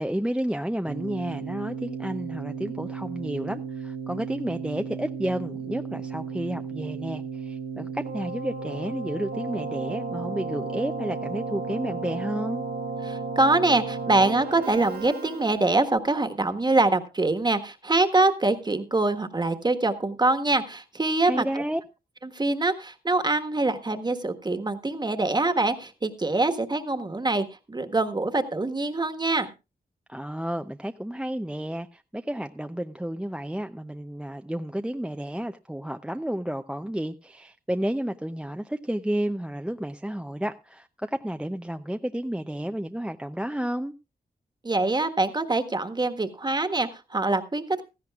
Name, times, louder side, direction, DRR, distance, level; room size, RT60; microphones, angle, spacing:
voice 1, 0.0-12.6 21.2-21.8 30.1-43.9, right 1 dB, 5° right, 0.6 m, -31 dB
Keyboard (musical), 0.9-15.9, right 4 dB, 85° right, 4.4 m, -34 dB
voice 2, 13.0-21.6 22.2-29.5 44.6-47.9, right 2 dB, 25° right, 1.5 m, -24 dB
17.0 x 14.0 x 2.4 m
cardioid pair, 75°, 17 cm